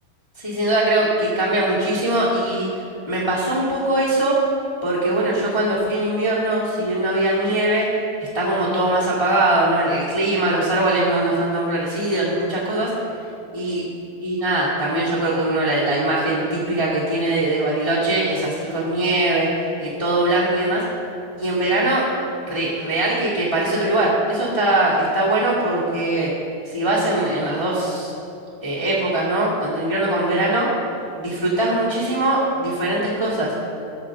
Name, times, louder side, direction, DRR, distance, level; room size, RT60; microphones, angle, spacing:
voice 1, 0.4-2.7 3.1-4.4 4.8-7.9 8.3-12.9 13.5-13.8 14.2-20.8 21.4-22.1 22.5-26.3 26.6-28.1 28.6-30.7 31.2-33.5, right 1 dB, 45° left, -8 dB, 0.4 m, -21 dB
14.5 x 6.5 x 3.7 m, 2.6 s
omnidirectional pair, 4.5 m